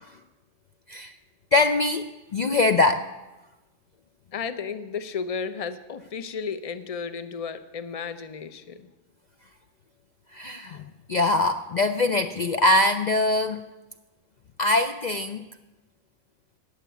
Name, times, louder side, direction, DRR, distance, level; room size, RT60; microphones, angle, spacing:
voice 1, 1.5-3.1 10.3-13.6 14.6-15.4, left 2 dB, 80° left, 8 dB, 0.3 m, -23 dB
voice 2, 4.3-8.9, left 6 dB, 35° left, 11 dB, 0.6 m, -33 dB
16.5 x 6.6 x 9.1 m, 1.1 s
omnidirectional pair, 1.4 m